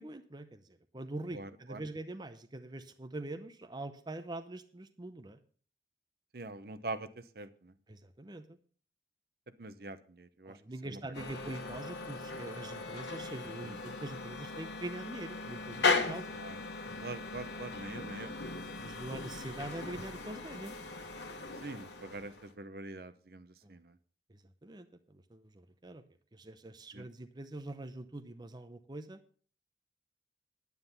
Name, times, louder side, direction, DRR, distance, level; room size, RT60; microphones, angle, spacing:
voice 1, 0.0-5.4 7.9-8.6 10.5-16.4 18.8-20.7 23.6-23.7 24.3-26.0 26.3-29.2, right 2 dB, 25° right, 8 dB, 0.7 m, -44 dB
voice 2, 1.3-1.8 6.3-7.7 9.6-11.0 13.6-13.8 16.3-16.6 17.0-18.3 21.6-24.0 26.9-27.1, right 2 dB, 55° right, 12 dB, 0.8 m, -44 dB
sound 1, 11.1-22.5, left 4 dB, 75° left, 1.3 m, -38 dB
9.8 x 9.5 x 5.5 m, 0.44 s
head